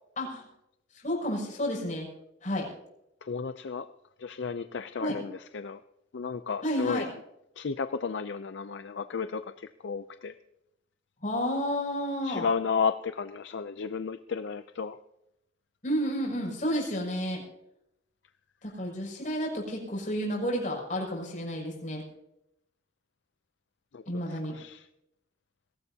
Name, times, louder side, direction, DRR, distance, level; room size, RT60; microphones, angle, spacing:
voice 1, 0.2-0.5 1.0-2.1 2.4-2.7 5.0-5.1 6.6-7.1 11.2-12.5 15.8-17.4 18.6-22.0 24.1-24.6, equal, 40° left, -2 dB, 6.3 m, -31 dB
voice 2, 3.2-3.9 4.2-5.8 6.1-7.1 7.6-10.3 12.2-15.0 23.9-24.9, left 5 dB, 65° left, 11 dB, 0.5 m, -33 dB
22.0 x 17.0 x 2.8 m, 0.82 s
head